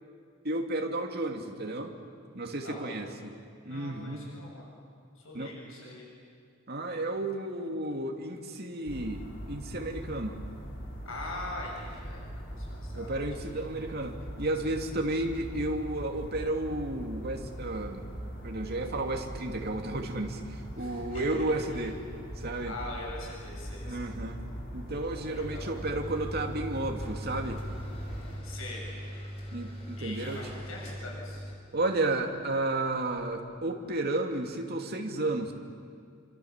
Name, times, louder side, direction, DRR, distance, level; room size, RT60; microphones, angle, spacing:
voice 1, 0.4-1.9 2.3-3.3 3.7-4.2 5.3-5.5 6.7-10.4 12.9-18.0 18.4-22.0 22.4-22.7 23.8-24.4 24.7-27.6 29.5-30.4 31.7-35.5, right 2 dB, 50° right, 3 dB, 2.7 m, -32 dB
voice 2, 2.6-3.1 3.6-4.7 5.2-6.0 11.1-13.6 20.8-21.3 21.7-21.9 22.7-24.1 25.1-25.8 28.4-28.8 30.0-31.4, left 2 dB, 85° left, -2 dB, 7.4 m, -43 dB
sound 1, 8.8-28.4, equal, 65° left, 6.7 m, -41 dB
sound 2, 25.4-34.0, equal, 30° left, 4.6 m, -41 dB
28.5 x 26.0 x 7.5 m, 2.3 s
head